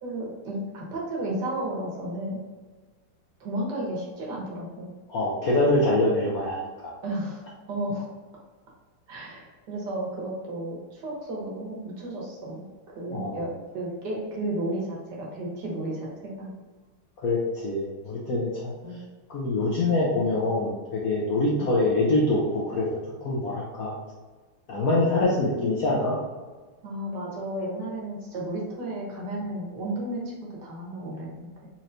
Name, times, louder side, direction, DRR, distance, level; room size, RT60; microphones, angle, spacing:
voice 1, 0.0-2.4 3.4-4.9 7.0-8.1 9.1-12.6 13.0-13.5 13.7-16.1 16.4-16.5 18.8-19.0 26.8-31.7, right 1 dB, 65° right, -3 dB, 1.4 m, -33 dB
voice 2, 5.1-6.9 13.1-13.5 17.2-18.7 19.3-22.9 23.2-23.9 24.7-26.2, left 2 dB, 65° left, -5 dB, 0.9 m, -24 dB
4.3 x 3.0 x 2.5 m, 1.3 s
omnidirectional pair, 2.2 m